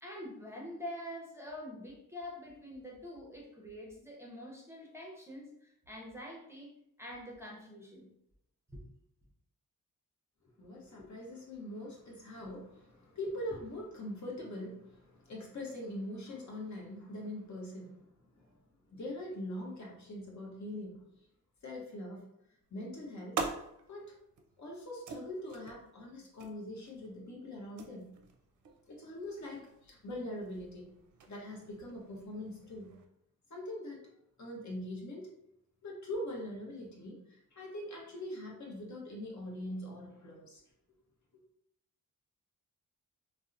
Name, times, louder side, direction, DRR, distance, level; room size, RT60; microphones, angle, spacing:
voice 1, 0.0-6.7 7.0-8.1 8.7-8.8, left 1 dB, 5° right, -3 dB, 0.6 m, -45 dB
voice 2, 10.4-18.6 18.9-21.0 21.6-22.3 22.7-23.4 23.9-24.1 24.6-28.2 28.9-30.9 31.3-32.9 33.5-34.0 34.4-35.3 35.8-40.6, left 1 dB, 55° left, -2 dB, 0.8 m, -43 dB
sound 1, 22.6-33.1, right 4 dB, 60° right, 0.5 m, -46 dB
2.7 x 2.1 x 2.4 m, 0.78 s
cardioid pair, 75°, 35 cm